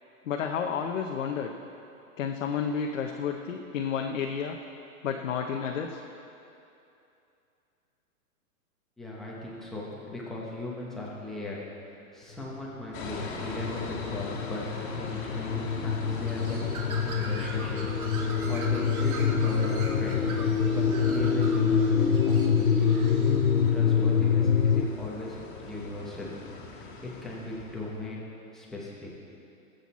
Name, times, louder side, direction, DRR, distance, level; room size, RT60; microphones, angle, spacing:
voice 1, 0.3-1.5 2.2-4.6 5.0-6.0, left 7 dB, 60° left, 2 dB, 0.9 m, -31 dB
voice 2, 9.0-17.9 18.5-23.0 23.7-26.3 26.8-28.3 28.5-29.1, left 2 dB, ahead, -6 dB, 0.9 m, -38 dB
sound 1, 12.9-24.9, left 6 dB, 90° left, 0.9 m, -26 dB
sound 2, 12.9-28.0, left 3 dB, 35° left, 1.7 m, -41 dB
Bird, 16.3-23.7, right 3 dB, 75° right, 2.0 m, -42 dB
19.0 x 8.1 x 4.2 m, 2.7 s
hypercardioid pair, 165°, 44 cm